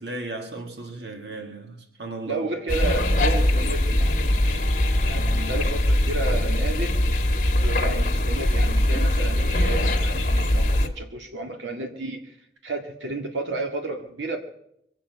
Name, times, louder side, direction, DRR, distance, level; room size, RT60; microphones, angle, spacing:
voice 1, 0.0-2.4, right 2 dB, 70° right, 2.0 m, -35 dB
voice 2, 2.3-4.7 5.0-7.0 7.3-12.4 12.6-14.4, right 3 dB, 90° right, 2.0 m, -32 dB
sound 1, 2.7-10.9, left 1 dB, 45° left, 1.5 m, -22 dB
24.0 x 8.9 x 5.9 m
head